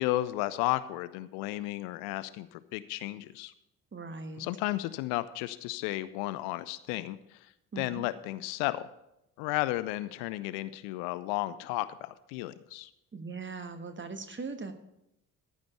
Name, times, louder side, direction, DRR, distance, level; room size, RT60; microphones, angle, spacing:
voice 1, 0.0-3.5 4.4-7.4 7.8-8.9 9.4-12.9, left 17 dB, 60° left, 15 dB, 0.6 m, -33 dB
voice 2, 3.9-4.5 7.7-8.0 13.1-14.7, right 4 dB, 25° right, 9 dB, 1.3 m, -40 dB
14.0 x 5.2 x 6.9 m, 0.85 s
figure-of-eight pair, 45°, 44 cm